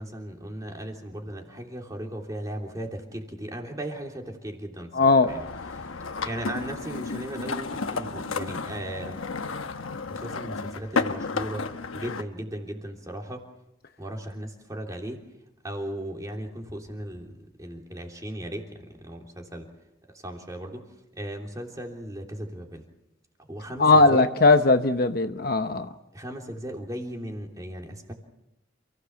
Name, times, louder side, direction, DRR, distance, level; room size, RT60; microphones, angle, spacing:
voice 1, 0.0-5.4 6.2-9.2 10.0-11.6 11.9-13.4 14.0-15.2 15.6-17.3 17.6-19.7 20.1-20.8 21.1-22.8 23.5-24.2 26.1-28.1, right 1 dB, 15° right, 3.2 m, -36 dB
voice 2, 4.9-5.3 23.8-25.9, left 3 dB, 50° left, 1.0 m, -19 dB
sound 1, 5.3-12.2, left 4 dB, 85° left, 1.1 m, -32 dB
28.5 x 16.5 x 7.1 m
head